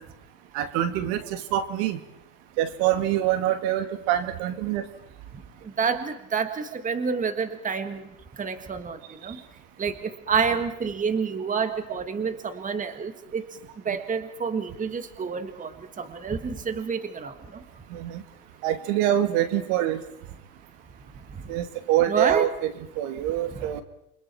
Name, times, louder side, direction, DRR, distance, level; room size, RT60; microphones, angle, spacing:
voice 1, 0.5-2.0 2.6-4.8 17.9-18.2 18.6-20.0 21.5-23.8, right 12 dB, 65° right, 9 dB, 2.3 m, -25 dB
voice 2, 5.8-8.0 8.4-9.0 9.2-9.4 9.8-13.5 13.8-17.3 22.1-22.5, right 6 dB, 20° right, 10 dB, 1.7 m, -28 dB
28.0 x 25.0 x 4.5 m, 0.80 s
supercardioid pair, 120°, 41 cm